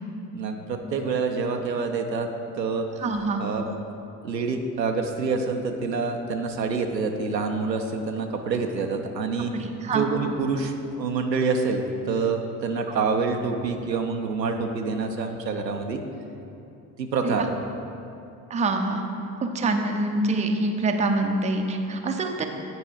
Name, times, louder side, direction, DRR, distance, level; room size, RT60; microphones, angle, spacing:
voice 1, 0.3-2.3 2.6-2.9 3.4-3.7 4.2-16.0 17.0-17.5, right 4 dB, 85° right, 4 dB, 0.6 m, -27 dB
voice 2, 3.0-3.4 9.5-10.1 17.2-17.5 18.5-19.0 19.4-22.4, right 2 dB, 15° right, 4 dB, 0.6 m, -25 dB
9.2 x 4.6 x 4.8 m, 2.7 s
figure-of-eight pair, 55°, 49 cm